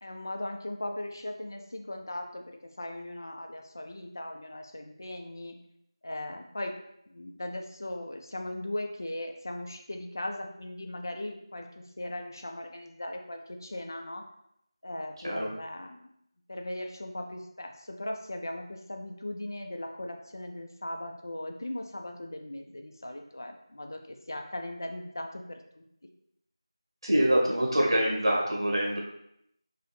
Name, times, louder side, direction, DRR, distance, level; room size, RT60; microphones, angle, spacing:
voice 1, 0.0-2.4 2.8-5.6 6.0-6.8 7.1-11.7 12.0-14.2 14.8-16.1 16.5-25.6, left 1 dB, 40° left, 4 dB, 0.4 m, -38 dB
voice 2, 27.0-29.0, right 1 dB, 55° right, -3 dB, 1.3 m, -25 dB
5.0 x 2.0 x 3.1 m, 0.77 s
figure-of-eight pair, 175°, 3 cm